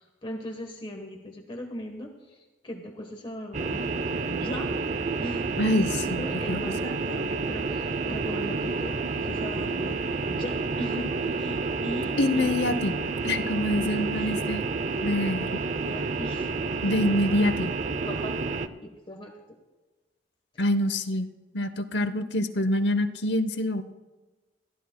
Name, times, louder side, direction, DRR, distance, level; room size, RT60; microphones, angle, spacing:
voice 1, 0.0-3.9 4.1-4.7 5.2-5.5 5.8-13.1 13.8-14.4 15.7-16.5 18.1-19.6, equal, 30° left, 2 dB, 1.2 m, -39 dB
sound 1, 3.5-18.7, right 4 dB, 45° right, 0.5 m, -29 dB
voice 2, 5.6-6.7 12.2-13.0 13.2-14.6 15.0-15.6 16.8-17.7 20.6-23.8, left 1 dB, 75° left, 10 dB, 0.8 m, -26 dB
22.0 x 14.5 x 2.3 m, 1.2 s
head